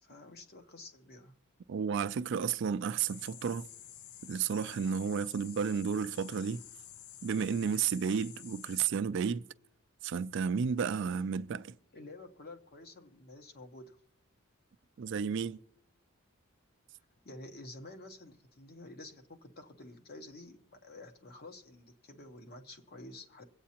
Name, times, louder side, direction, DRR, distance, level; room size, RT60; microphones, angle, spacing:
voice 1, 0.0-1.4 11.9-14.0 17.2-23.4, left 2 dB, 45° left, 1.0 m, -50 dB
voice 2, 1.7-3.7 4.2-6.6 7.2-9.4 10.0-11.7 15.0-15.6, right 6 dB, 60° right, 0.3 m, -32 dB
sound 1, 3.1-8.9, left 10 dB, 85° left, 0.4 m, -51 dB
24.5 x 8.4 x 2.9 m
head